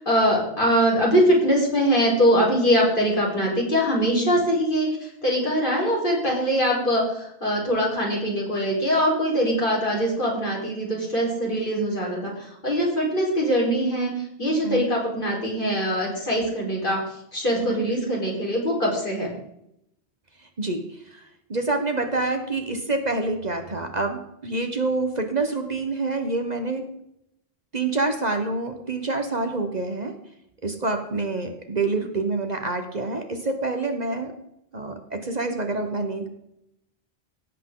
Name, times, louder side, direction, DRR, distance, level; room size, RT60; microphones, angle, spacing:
voice 1, 0.0-17.0 17.3-19.3, equal, 55° left, -3 dB, 4.9 m, -22 dB
voice 2, 14.6-14.9 17.5-17.8 20.6-26.9 27.7-30.1 30.6-34.4 34.7-36.3, right 3 dB, 40° right, 6 dB, 1.3 m, -27 dB
17.0 x 8.3 x 3.9 m, 0.80 s
omnidirectional pair, 1.1 m